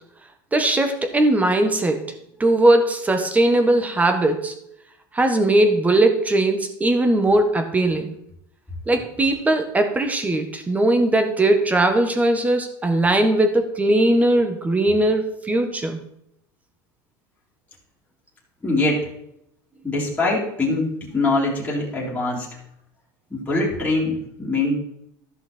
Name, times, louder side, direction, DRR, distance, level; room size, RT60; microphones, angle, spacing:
voice 1, 0.5-2.0 2.4-4.6 5.1-8.1 8.9-16.0, right 1 dB, 15° right, 7 dB, 1.3 m, -19 dB
voice 2, 18.6-19.1 19.8-22.6 23.3-24.8, left 2 dB, 10° left, -6 dB, 3.3 m, -23 dB
13.5 x 5.8 x 4.4 m, 0.76 s
supercardioid pair, 120°, 11 cm